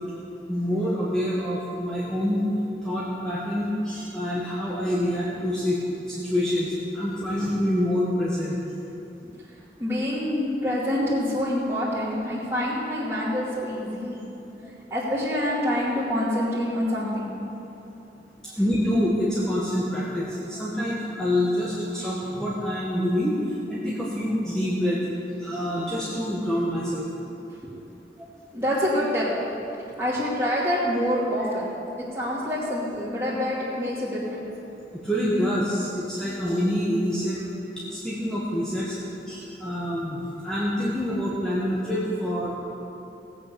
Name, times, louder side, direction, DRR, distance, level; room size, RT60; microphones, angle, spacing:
voice 1, 0.5-2.4 2.8-5.8 6.1-8.6 18.6-23.4 23.7-25.0 25.4-27.0 35.0-37.4 37.9-38.9 39.3-42.5, equal, 5° left, -8 dB, 1.6 m, -26 dB
voice 2, 9.8-14.2 14.9-17.3 28.5-29.3 30.0-31.7 32.0-34.5, equal, 15° right, -13 dB, 2.7 m, -26 dB
18.0 x 8.6 x 7.0 m, 2.9 s
head